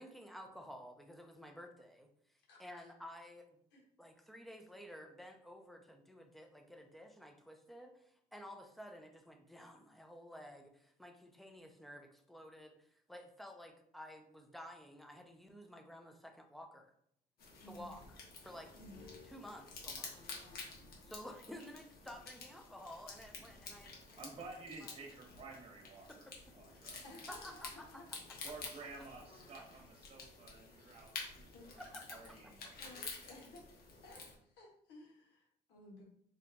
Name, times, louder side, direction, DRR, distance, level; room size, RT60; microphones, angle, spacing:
voice 1, 0.0-3.6 4.0-16.9 17.6-18.7 19.2-20.4 21.0-24.2 24.8-25.0 26.1-26.3 26.7-26.8 27.3-28.0 31.8-32.4, equal, ahead, 4 dB, 0.5 m, -53 dB
voice 2, 2.5-2.9 3.7-3.8 17.6-17.9 18.7-19.0 26.9-28.0 31.5-31.7 32.8-33.8 34.0-36.0, left 2 dB, 85° left, -1 dB, 1.3 m, -56 dB
sound 1, 17.4-34.4, left 4 dB, 65° left, 1.1 m, -51 dB
voice 3, 23.4-23.9 24.1-27.0 28.4-29.2 29.5-33.4, right 3 dB, 35° right, 1 dB, 1.2 m, -53 dB
4.0 x 2.4 x 3.4 m, 0.68 s
cardioid pair, 110°, 17 cm